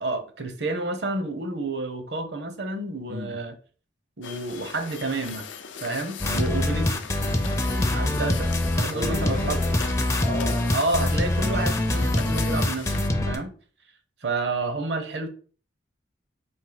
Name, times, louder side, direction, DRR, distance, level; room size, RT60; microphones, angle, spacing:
voice 1, 0.0-3.5 4.2-5.5 5.8-7.6 7.9-8.5 8.7-9.6 10.7-13.0 13.3-13.5 14.2-15.3, right 2 dB, 65° right, 0.7 m, -30 dB
voice 2, 3.1-3.4 7.5-8.2 8.9-10.7, left 1 dB, 85° right, 1.7 m, -35 dB
sound 1, 4.2-13.1, left 7 dB, 85° left, 0.5 m, -39 dB
sound 2, 6.2-13.4, left 1 dB, 15° left, 0.4 m, -24 dB
4.4 x 2.7 x 4.0 m
head